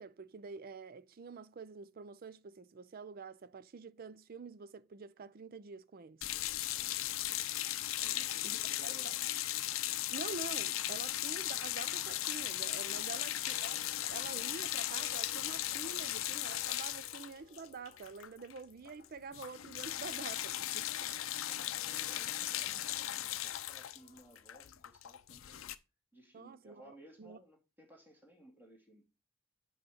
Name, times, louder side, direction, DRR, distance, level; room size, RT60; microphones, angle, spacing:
voice 1, 0.0-6.2 8.4-8.6 8.8-9.1 10.1-21.2 21.9-22.1 26.3-27.4, right 4 dB, 45° right, 0.4 m, -47 dB
sound 1, 6.2-18.6 18.9-19.1 19.3-25.8, left 13 dB, 80° left, 0.5 m, -37 dB
voice 2, 6.6-7.2 8.0-9.4 12.9-13.4 21.5-22.9 23.3-25.7 26.1-29.0, right 1 dB, 10° right, 2.2 m, -59 dB
sound 2, 12.2-20.4 21.1-24.6, left 3 dB, 35° left, 1.4 m, -63 dB
8.7 x 3.1 x 6.3 m
head